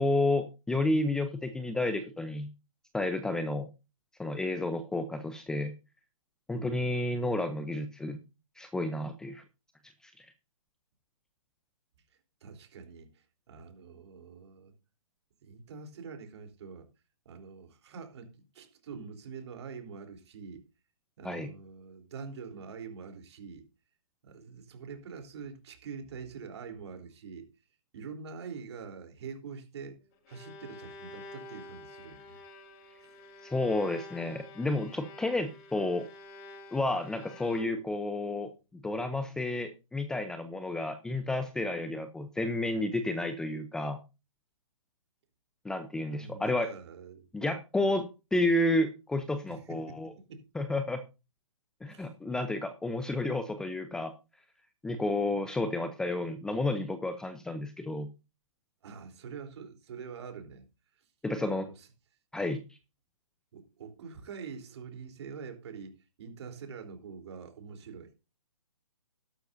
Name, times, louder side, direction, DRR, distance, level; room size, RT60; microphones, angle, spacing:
voice 1, 0.0-2.5 2.9-3.7 4.2-5.7 6.5-8.2 8.6-9.4 10.2-10.3 21.2-21.5 33.4-36.1 36.7-44.0 45.6-46.7 47.3-50.1 50.5-51.0 51.8-54.1 54.8-58.1 61.2-61.6 62.3-62.6, left 2 dB, 5° left, 0.6 m, -31 dB
voice 2, 12.4-14.7 15.4-16.9 17.3-20.6 21.2-23.7 24.2-27.5 27.9-30.0 30.3-32.4 33.0-33.2 46.2-47.3 49.5-50.5 51.9-52.1 58.8-60.6 61.4-61.9 63.5-68.1, right 5 dB, 50° right, 3.6 m, -45 dB
Bowed string instrument, 30.0-38.1, left 2 dB, 30° left, 2.1 m, -49 dB
12.5 x 12.0 x 2.6 m
hypercardioid pair, 140°, 18 cm